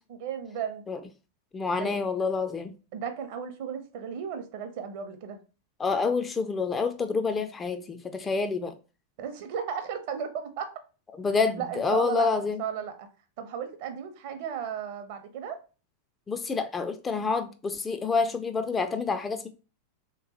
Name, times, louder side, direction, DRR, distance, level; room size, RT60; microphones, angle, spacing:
voice 1, 0.1-0.9 1.8-2.0 2.9-5.4 9.2-10.8 11.6-13.1 13.4-15.6, right 7 dB, 50° right, 0.6 m, -35 dB
voice 2, 1.5-2.7 5.8-8.8 11.2-12.6 16.3-19.5, left 4 dB, 15° left, 0.3 m, -28 dB
3.4 x 3.0 x 2.8 m
figure-of-eight pair, 90°, 0 cm